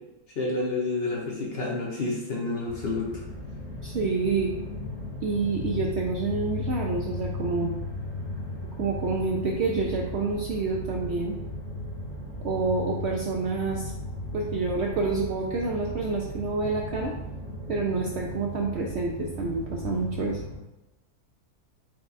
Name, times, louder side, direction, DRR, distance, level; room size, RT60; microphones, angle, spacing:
voice 1, 0.4-3.2, left 3 dB, 55° left, -3 dB, 0.8 m, -29 dB
sound 1, 2.6-20.6, left 2 dB, 75° left, 1.7 m, -36 dB
voice 2, 3.8-4.5 5.2-7.7 8.8-11.4 12.4-13.9 14.3-17.1 17.7-20.4, right 4 dB, 70° right, -1 dB, 0.6 m, -28 dB
4.8 x 2.3 x 3.9 m, 0.99 s
omnidirectional pair, 1.6 m